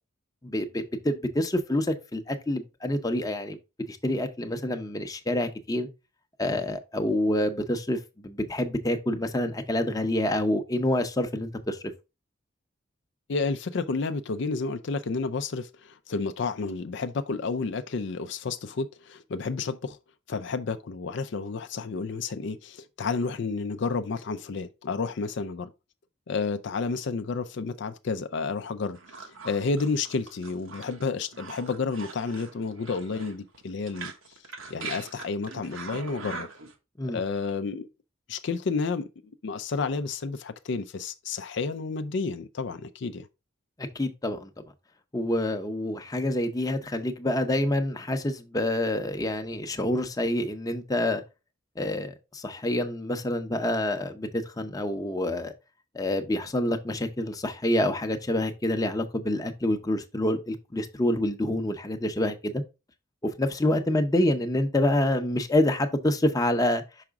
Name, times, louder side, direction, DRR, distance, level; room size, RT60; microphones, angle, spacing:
voice 1, 0.4-3.6 3.9-5.9 6.4-11.8 37.0-37.2 43.8-44.5 45.1-51.2 51.8-55.5 55.9-62.6 63.2-66.8, left 1 dB, 20° left, 0.7 m, -27 dB
voice 2, 13.3-20.0 20.3-25.7 26.3-34.1 34.7-36.5 37.0-37.9 38.3-39.1 39.4-43.3, left 4 dB, 60° left, 0.4 m, -31 dB
sound 1, 28.9-36.7, right 4 dB, 85° right, 1.2 m, -42 dB
5.9 x 4.9 x 3.5 m
head